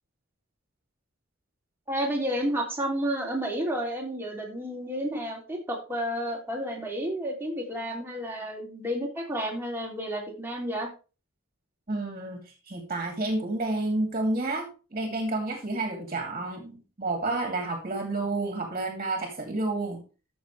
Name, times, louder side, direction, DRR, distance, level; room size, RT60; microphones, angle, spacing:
voice 1, 1.9-10.9, equal, 10° right, -1 dB, 2.9 m, -31 dB
voice 2, 11.9-20.0, right 2 dB, 30° right, 3 dB, 2.5 m, -30 dB
13.5 x 6.9 x 3.3 m, 0.33 s
head